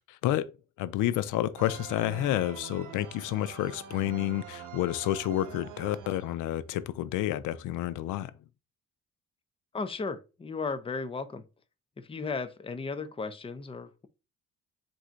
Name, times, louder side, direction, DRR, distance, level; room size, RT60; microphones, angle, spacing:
voice 1, 0.1-8.5, left 13 dB, 90° left, 0.5 m, -30 dB
sound 1, 1.6-6.8, right 9 dB, 75° right, 0.8 m, -45 dB
voice 2, 9.7-11.4 12.0-14.1, left 4 dB, 20° left, 0.5 m, -35 dB
3.6 x 2.7 x 4.4 m
cardioid pair, 90°, 30 cm